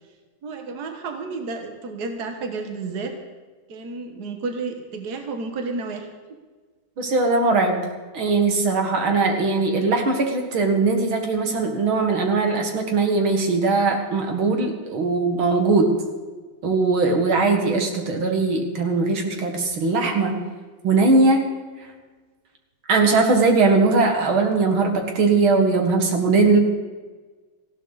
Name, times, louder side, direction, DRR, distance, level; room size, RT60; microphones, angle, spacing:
voice 1, 0.4-3.1 3.7-6.1, right 3 dB, 55° right, 4 dB, 2.0 m, -31 dB
voice 2, 7.0-7.8 8.1-16.0 16.6-20.4 20.8-21.6 22.9-26.6, right 3 dB, 85° right, 3 dB, 2.7 m, -20 dB
18.5 x 15.5 x 4.1 m, 1.4 s
omnidirectional pair, 2.2 m